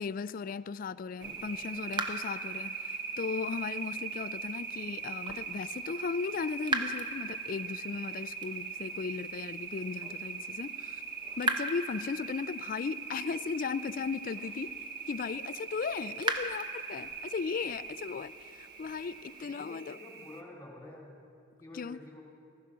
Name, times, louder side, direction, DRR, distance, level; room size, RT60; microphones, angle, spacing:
voice 1, 0.0-11.0 11.4-14.7 15.1-20.0 21.7-22.0, left 5 dB, 45° left, 0.3 m, -37 dB
sound 1, 1.2-19.4, right 3 dB, 25° right, 0.8 m, -41 dB
sound 2, 1.2-20.4, right 6 dB, 55° right, 1.1 m, -41 dB
voice 2, 19.4-21.1 21.6-22.2, left 2 dB, 15° left, 3.5 m, -49 dB
15.5 x 14.5 x 6.1 m
head